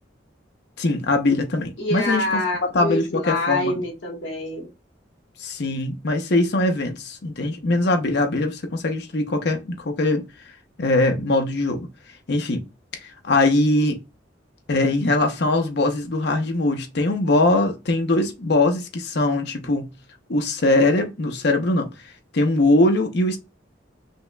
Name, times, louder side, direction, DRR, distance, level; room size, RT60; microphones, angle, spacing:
voice 1, 0.8-2.4 2.7-3.8 5.4-10.2 10.8-11.9 12.3-12.6 13.0-14.0 14.7-19.9 20.3-23.4, left 2 dB, 60° left, 0.7 m, -21 dB
voice 2, 1.8-4.7, left 1 dB, 80° left, 1.4 m, -26 dB
5.5 x 3.0 x 2.2 m
head